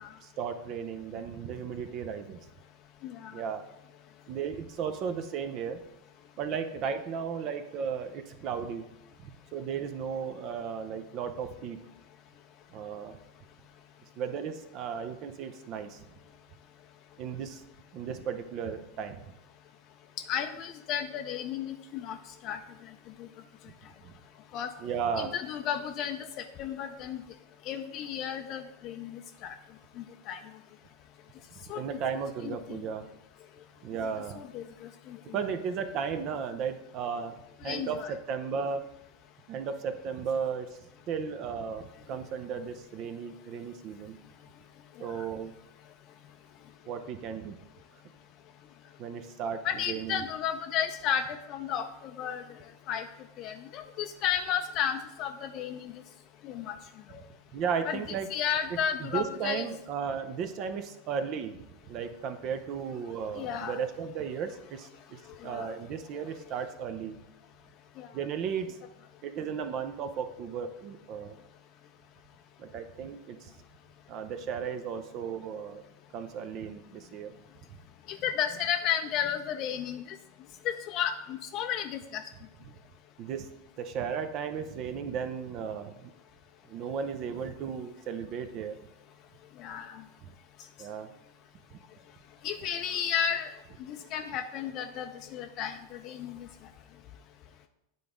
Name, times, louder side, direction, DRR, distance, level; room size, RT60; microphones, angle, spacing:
voice 1, 0.2-2.4 3.3-3.6 4.3-5.8 6.4-8.9 9.2-11.8 12.7-13.2 14.2-16.0 17.2-17.6 17.9-19.3 24.0-24.1 24.8-25.4 31.7-33.1 33.8-34.4 35.3-37.4 37.6-38.9 39.5-40.7 41.1-44.2 45.0-45.5 46.9-47.6 49.0-50.2 57.5-58.3 58.7-61.6 61.9-67.2 68.1-68.8 69.2-71.4 72.6-73.5 74.1-75.8 76.1-77.3 83.2-83.5 83.8-86.1 86.7-88.8 90.2-90.3 90.8-91.1, right 6 dB, 45° right, 9 dB, 0.6 m, -35 dB
voice 2, 3.0-3.4 20.3-22.2 22.4-22.6 23.2-23.3 24.5-24.7 25.2-27.2 27.6-29.6 30.0-30.4 31.7-31.8 32.4-32.8 34.4-35.2 37.6-38.1 45.0-45.2 49.6-52.6 52.9-53.1 53.4-55.9 56.4-56.8 57.1-57.2 57.9-58.0 58.3-59.6 63.4-63.8 65.3-65.7 68.0-68.1 78.1-80.2 80.6-82.2 89.6-90.0 92.4-93.5 93.8-96.5, left 8 dB, 45° left, 6 dB, 0.4 m, -33 dB
9.3 x 3.9 x 3.6 m, 0.86 s
hypercardioid pair, 100°, 0 cm